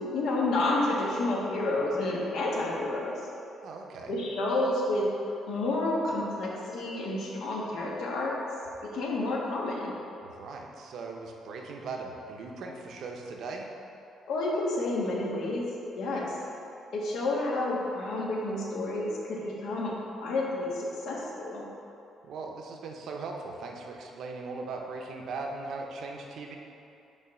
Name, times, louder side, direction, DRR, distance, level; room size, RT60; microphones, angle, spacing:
voice 1, 0.0-3.1 4.1-5.1 5.4-8.3 8.8-9.9 14.3-15.7 15.9-16.4 16.9-21.6, left 2 dB, 75° left, -4 dB, 1.4 m, -30 dB
voice 2, 3.6-4.1 10.2-13.7 22.2-26.6, right 3 dB, 65° right, 1 dB, 0.8 m, -39 dB
5.6 x 4.5 x 6.2 m, 2.7 s
cardioid pair, 140°, 0 cm